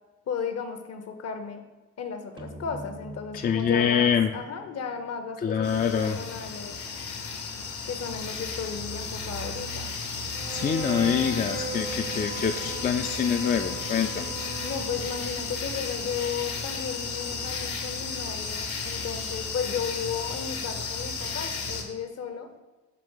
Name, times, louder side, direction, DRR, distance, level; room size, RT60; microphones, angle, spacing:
voice 1, 0.3-1.6 2.0-6.8 7.8-9.9 14.6-22.5, left 6 dB, 55° left, 7 dB, 0.8 m, -34 dB
sound 1, 2.4-5.9, right 1 dB, 15° right, 0.5 m, -45 dB
voice 2, 3.3-4.3 5.4-6.2 10.5-14.3, left 7 dB, 30° left, 5 dB, 0.4 m, -25 dB
sound 2, 5.6-21.8, left 4 dB, 75° left, 1.2 m, -34 dB
Bowed string instrument, 10.3-15.4, right 6 dB, 60° right, 0.7 m, -38 dB
6.8 x 2.9 x 5.4 m, 1.2 s
cardioid pair, 90°, 30 cm